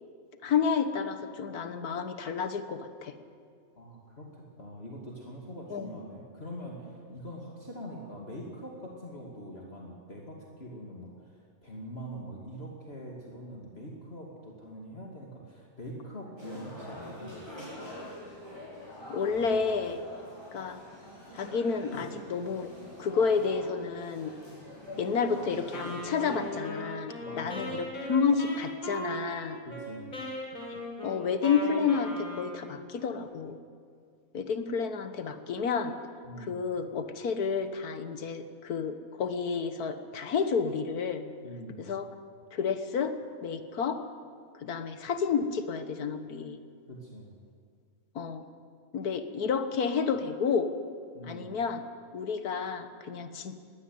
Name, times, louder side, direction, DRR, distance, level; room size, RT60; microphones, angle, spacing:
voice 1, 0.4-3.1 5.7-6.0 19.1-20.0 20.5-20.8 21.3-22.7 23.0-24.3 25.0-29.6 30.7-33.6 34.3-36.0 36.4-41.2 41.8-42.1 42.5-43.1 43.4-44.0 44.5-46.6 48.2-48.4 48.9-50.7 51.2-51.8 52.1-53.6, left 6 dB, 80° left, 9 dB, 1.8 m, -30 dB
voice 2, 3.8-17.7 21.9-22.0 27.2-27.8 29.6-30.2 36.2-36.6 41.4-41.8 46.9-47.3 51.1-51.5, equal, 40° left, -1 dB, 2.7 m, -43 dB
sound 1, 16.4-26.5, equal, 15° right, 8.0 m, -45 dB
Wind instrument woodwind instrument, 25.7-32.9, equal, 65° left, 4.5 m, -38 dB
21.0 x 16.5 x 9.5 m, 2.2 s
omnidirectional pair, 1.6 m